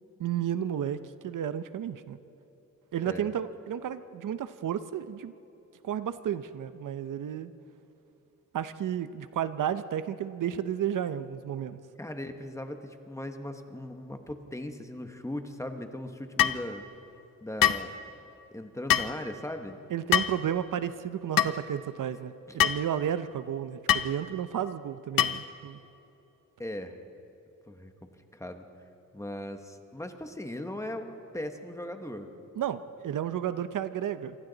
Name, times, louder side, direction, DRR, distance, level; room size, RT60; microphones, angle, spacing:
voice 1, 0.2-2.2 2.9-5.3 5.8-7.5 8.5-11.8 19.9-25.8 32.6-34.4, right 9 dB, 70° right, 12 dB, 0.7 m, -32 dB
voice 2, 12.0-16.8 17.4-17.9 18.5-19.8 22.5-22.6 26.6-27.0 27.7-27.9 28.3-28.7 29.1-32.3, left 1 dB, 10° left, 6 dB, 1.0 m, -38 dB
sound 1, 16.4-16.6 17.6-17.9 18.9-19.1 20.1-20.4 21.4-21.5 22.6-22.8 23.9-24.1 25.2-25.5, left 11 dB, 90° left, 0.7 m, -24 dB
27.5 x 25.0 x 4.0 m, 2.9 s
wide cardioid pair, 180°, 33 cm